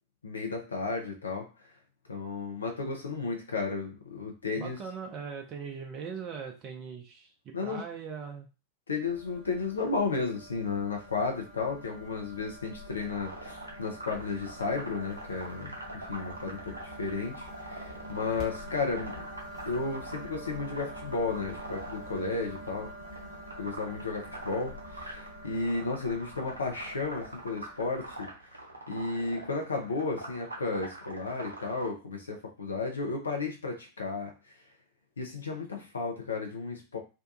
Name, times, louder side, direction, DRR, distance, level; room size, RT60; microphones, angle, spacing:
voice 1, 0.2-1.5 2.1-4.8 7.5-7.8 8.9-19.1 19.7-22.9 23.6-28.3 28.9-34.3 35.2-37.0, left 4 dB, 75° left, 2 dB, 0.5 m, -33 dB
voice 2, 4.6-8.5, right 6 dB, 35° right, 3 dB, 0.5 m, -40 dB
sound 1, 9.1-28.3, equal, 40° left, 1.1 m, -46 dB
sound 2, 13.0-31.9, right 1 dB, 75° right, 0.6 m, -44 dB
2.6 x 2.2 x 2.5 m, 0.32 s
figure-of-eight pair, 90°, 0 cm